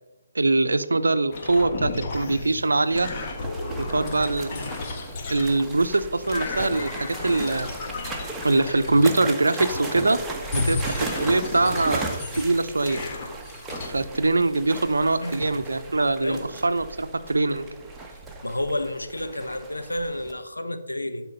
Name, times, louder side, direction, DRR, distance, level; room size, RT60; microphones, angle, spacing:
voice 1, 0.3-3.1 3.8-4.7 5.3-7.7 8.4-10.2 10.5-13.0 13.8-17.7, right 2 dB, 75° right, 11 dB, 0.6 m, -23 dB
sound 1, 1.3-5.9 6.2-9.1 9.5-10.1 10.4-12.4 12.8-13.9, left 3 dB, 35° left, 1.7 m, -33 dB
sound 2, 2.9-20.3, right 3 dB, 10° right, 1.2 m, -37 dB
voice 2, 18.4-21.3, left 1 dB, 90° left, 8 dB, 1.1 m, -30 dB
11.0 x 4.5 x 5.5 m, 1.2 s
figure-of-eight pair, 140°, 0 cm